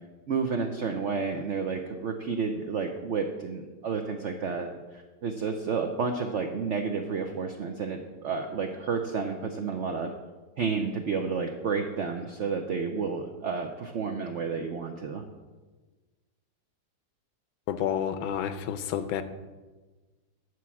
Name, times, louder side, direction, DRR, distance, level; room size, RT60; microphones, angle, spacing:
voice 1, 0.3-4.8 5.2-10.1 10.6-15.2, right 5 dB, 80° right, 4 dB, 0.6 m, -31 dB
voice 2, 17.7-19.2, left 9 dB, 85° left, 10 dB, 1.4 m, -30 dB
9.8 x 4.6 x 7.0 m, 1.3 s
omnidirectional pair, 2.1 m